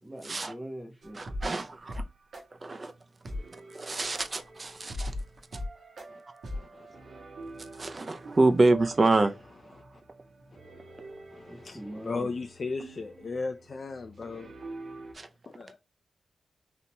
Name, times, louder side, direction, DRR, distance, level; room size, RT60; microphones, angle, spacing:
voice 1, 0.0-1.2 11.5-12.3, equal, 5° right, 1.1 m, -42 dB
sound 1, 1.0-2.4 2.8-2.9 3.2-15.1, equal, 85° right, 1.4 m, -42 dB
voice 2, 1.2-2.0 2.6-2.9 3.7-5.1 7.8-9.3 15.2-15.3, right 2 dB, 35° right, 0.6 m, -26 dB
voice 3, 6.5-6.9 9.7-9.8 11.3-14.5 15.5-15.8, left 4 dB, 45° left, 0.4 m, -36 dB
4.3 x 2.9 x 3.3 m
wide cardioid pair, 105°, 0 cm